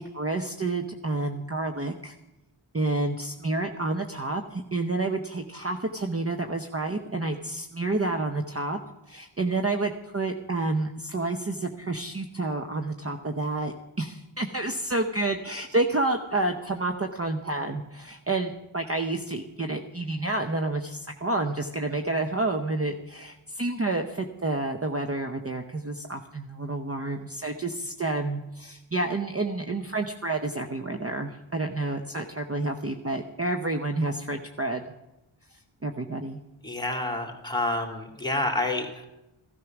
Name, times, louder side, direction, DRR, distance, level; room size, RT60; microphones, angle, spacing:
voice 1, 0.0-2.1 2.7-8.8 9.1-34.8 35.8-36.4, right 2 dB, 30° right, 5 dB, 0.8 m, -29 dB
voice 2, 36.6-39.1, left 2 dB, 10° left, 2 dB, 2.5 m, -29 dB
15.0 x 13.0 x 6.0 m, 0.94 s
wide cardioid pair, 60°, 50 cm